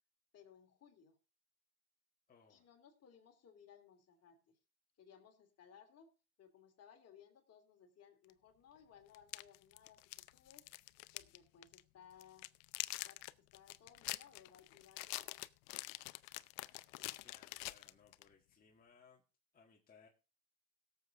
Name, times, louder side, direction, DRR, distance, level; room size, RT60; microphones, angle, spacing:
voice 1, 0.3-1.2 2.5-4.6 5.0-6.1 6.4-10.0 10.3-10.7 11.1-12.5 13.0-15.3, left 8 dB, 35° left, 4 dB, 2.7 m, -62 dB
voice 2, 2.3-2.7 17.2-19.2 19.5-20.1, left 6 dB, 20° left, -2 dB, 1.9 m, -66 dB
sound 1, 8.3-8.4 9.1-11.4 11.6-11.8 12.2-18.3, left 22 dB, 70° left, 0.7 m, -46 dB
17.0 x 7.4 x 3.7 m, 0.34 s
supercardioid pair, 115°, 41 cm